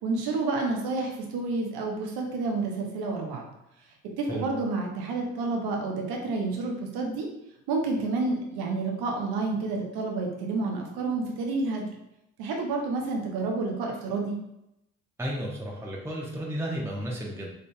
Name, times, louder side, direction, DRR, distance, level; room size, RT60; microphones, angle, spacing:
voice 1, 0.0-3.4 4.2-7.3 7.7-11.9 12.4-14.3, right 3 dB, 65° right, 1 dB, 1.0 m, -29 dB
voice 2, 15.2-17.5, right 1 dB, 5° right, -3 dB, 1.0 m, -33 dB
5.2 x 3.9 x 2.2 m, 0.85 s
figure-of-eight pair, 40°, 41 cm